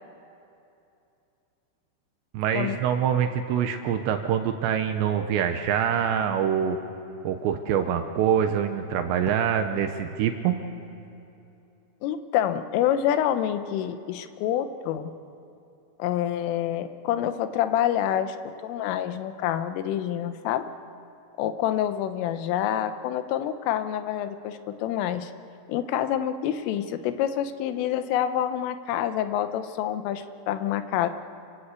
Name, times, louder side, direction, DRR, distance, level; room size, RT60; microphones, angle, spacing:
voice 1, 2.3-6.8 7.2-10.6, right 8 dB, 75° right, 7 dB, 2.9 m, -25 dB
voice 2, 12.0-15.1 16.0-18.4 18.6-20.7 21.4-25.3 25.7-31.1, left 10 dB, 85° left, 10 dB, 3.5 m, -27 dB
27.0 x 19.5 x 8.3 m, 2.7 s
omnidirectional pair, 5.7 m